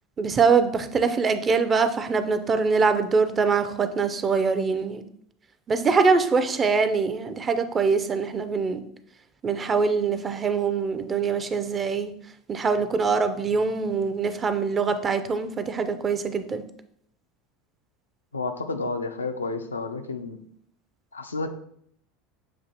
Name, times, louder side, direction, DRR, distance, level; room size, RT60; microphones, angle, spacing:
voice 1, 0.2-5.0 5.7-8.8 9.4-12.1 12.5-16.6, right 5 dB, 30° right, 9 dB, 0.5 m, -23 dB
voice 2, 18.3-20.4 21.1-21.5, left 3 dB, 90° left, 7 dB, 0.4 m, -30 dB
7.2 x 2.5 x 2.8 m, 0.66 s
hypercardioid pair, 80°, 0 cm